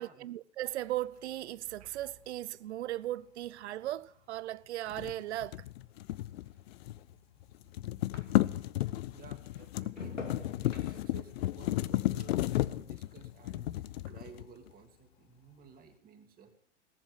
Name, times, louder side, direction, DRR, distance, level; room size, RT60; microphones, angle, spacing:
voice 1, 0.0-5.6, right 14 dB, 65° right, 0.6 m, -37 dB
sound 1, 2.0-8.8 9.1-13.7 14.0-14.5, left 4 dB, 90° left, 2.7 m, -51 dB
sound 2, 4.9-7.1 7.4-14.7, left 15 dB, 55° left, 0.8 m, -33 dB
voice 2, 9.1-10.2 10.6-16.6, right 6 dB, 25° right, 2.7 m, -54 dB
18.5 x 7.2 x 9.3 m
hypercardioid pair, 110°, 36 cm